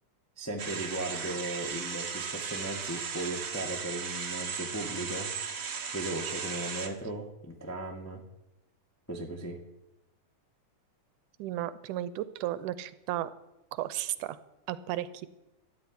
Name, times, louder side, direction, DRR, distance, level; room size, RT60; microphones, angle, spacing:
voice 1, 0.4-5.3 5.9-8.2 9.1-9.6, right 1 dB, 10° left, 1 dB, 0.6 m, -37 dB
sound 1, 0.6-6.9, right 6 dB, 70° right, 0.8 m, -36 dB
voice 2, 11.4-13.3 13.7-14.4 14.7-15.3, right 13 dB, 85° right, 16 dB, 2.2 m, -34 dB
13.5 x 8.8 x 9.7 m, 0.94 s
omnidirectional pair, 3.7 m